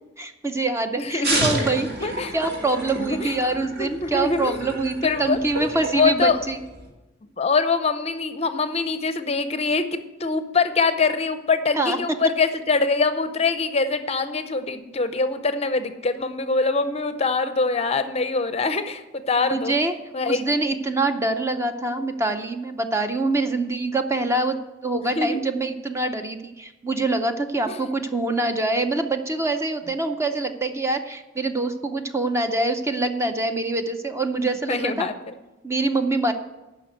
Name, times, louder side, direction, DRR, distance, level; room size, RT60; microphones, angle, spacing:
voice 1, 0.2-6.6 11.7-12.0 19.5-19.9 20.2-35.1 35.6-36.3, right 2 dB, 15° right, 6 dB, 0.6 m, -25 dB
voice 2, 1.0-1.5 2.0-2.3 3.2-3.4 3.8-4.8 5.0-5.4 5.7-6.4 7.4-19.7 20.1-20.8 25.0-25.4 27.7-27.9 34.7-35.3, left 4 dB, 35° left, 10 dB, 0.6 m, -24 dB
sound 1, 1.2-6.9, right 1 dB, 50° right, 2.3 m, -30 dB
10.5 x 6.0 x 7.8 m, 1.0 s
head